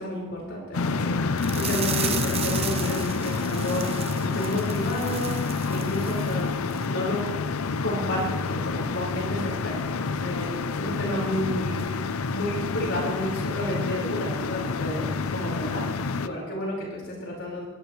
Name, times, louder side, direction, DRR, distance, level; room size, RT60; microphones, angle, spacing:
voice 1, 0.0-3.8 4.2-6.5 6.8-7.2 7.8-15.8 16.2-17.7, left 1 dB, 60° left, -3 dB, 4.9 m, -31 dB
sound 1, 0.7-16.3, left 4 dB, 80° left, 0.6 m, -28 dB
sound 2, 1.4-6.4 6.7-6.9 7.3-7.4, right 8 dB, 30° right, 0.8 m, -35 dB
25.5 x 17.0 x 3.2 m, 1.3 s
head